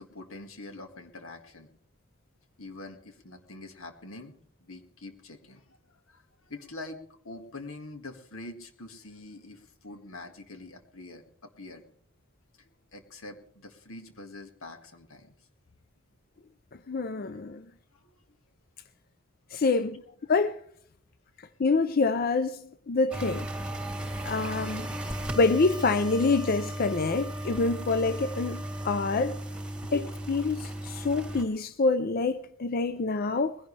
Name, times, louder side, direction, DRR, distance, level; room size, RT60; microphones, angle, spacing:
voice 1, 0.0-1.7 2.6-5.8 6.1-11.8 12.6-15.3 17.2-17.3 18.0-18.2 19.7-20.0 29.8-30.1, left 2 dB, 80° left, 2.0 m, -45 dB
voice 2, 16.9-17.6 19.5-20.0 20.3-20.6 21.6-22.6 22.9-23.5 24.2-24.9 25.4-29.4 29.9-30.0 30.3-33.6, left 3 dB, 45° left, 0.5 m, -26 dB
sound 1, 23.1-31.4, right 1 dB, 5° right, 2.6 m, -35 dB
20.5 x 16.5 x 3.3 m
head